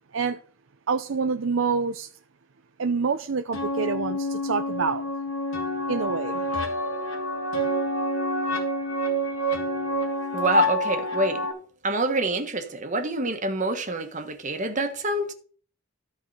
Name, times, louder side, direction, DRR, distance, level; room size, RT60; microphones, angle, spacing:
voice 1, 0.9-2.1 2.8-5.1 5.9-6.4, right 5 dB, 70° right, 0.6 m, -27 dB
sound 1, 3.5-11.5, left 1 dB, 85° left, 2.9 m, -27 dB
voice 2, 10.3-11.4 11.8-15.3, right 2 dB, 40° right, 1.4 m, -26 dB
13.5 x 4.8 x 5.6 m
head